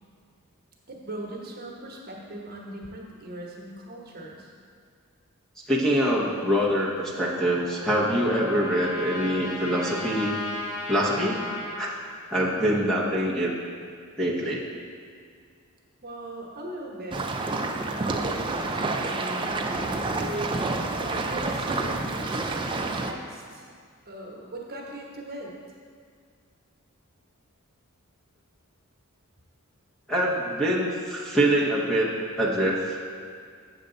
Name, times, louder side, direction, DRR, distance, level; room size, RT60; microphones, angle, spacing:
voice 1, 0.9-4.5 12.6-13.0 16.0-17.3 17.8-20.6 21.0-23.7 24.1-25.5, right 1 dB, 45° right, -1 dB, 1.1 m, -39 dB
voice 2, 5.7-10.4 10.9-11.4 11.8-12.0 12.3-13.5 14.2-14.6 30.1-32.1 32.4-33.0, equal, ahead, -5 dB, 0.9 m, -24 dB
Trumpet, 7.3-11.8, left 1 dB, 65° left, 1.5 m, -36 dB
sound 1, 17.1-23.1, right 3 dB, 20° right, 0.4 m, -29 dB
7.9 x 6.7 x 3.9 m, 2.1 s
head